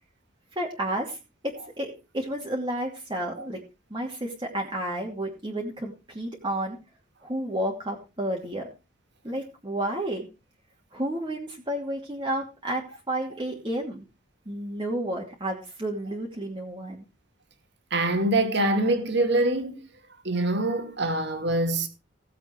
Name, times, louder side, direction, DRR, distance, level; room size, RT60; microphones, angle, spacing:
voice 1, 0.6-1.2 1.4-3.6 3.9-6.8 7.2-8.7 9.2-10.3 10.9-12.8 13.1-14.0 14.5-17.1, right 1 dB, 25° right, 2.7 m, -31 dB
voice 2, 17.9-19.8 20.2-21.9, right 2 dB, 65° right, 2.6 m, -24 dB
17.0 x 7.9 x 4.7 m
head